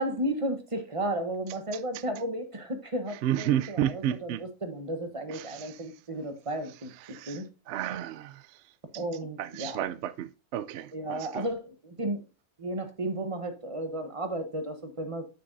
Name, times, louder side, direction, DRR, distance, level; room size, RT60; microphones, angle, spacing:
voice 1, 0.0-7.5 8.9-9.8 10.9-12.2 12.6-15.4, right 1 dB, 25° right, 1.0 m, -33 dB
voice 2, 3.2-4.4 5.3-5.8 7.0-8.6 8.9-9.0 9.4-11.5, right 11 dB, 65° right, 0.7 m, -32 dB
9.3 x 6.5 x 2.6 m
omnidirectional pair, 1.6 m